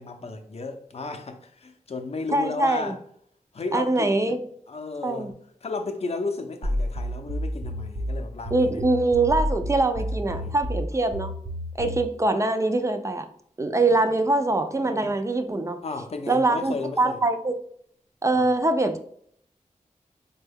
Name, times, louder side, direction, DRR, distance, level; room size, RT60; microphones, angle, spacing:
voice 1, 0.0-3.0 3.5-4.4 4.7-5.3 5.6-8.8 10.3-10.6 11.8-12.0 15.8-17.2 18.4-18.5, left 3 dB, 50° left, 0.5 m, -34 dB
voice 2, 2.3-2.9 3.7-4.4 5.0-5.3 8.5-11.3 11.8-13.3 13.6-15.8 16.3-17.6 18.2-19.0, right 2 dB, 20° right, 0.4 m, -23 dB
sound 1, 6.6-12.1, equal, 55° right, 0.7 m, -30 dB
4.3 x 2.2 x 3.4 m
wide cardioid pair, 100°, 13 cm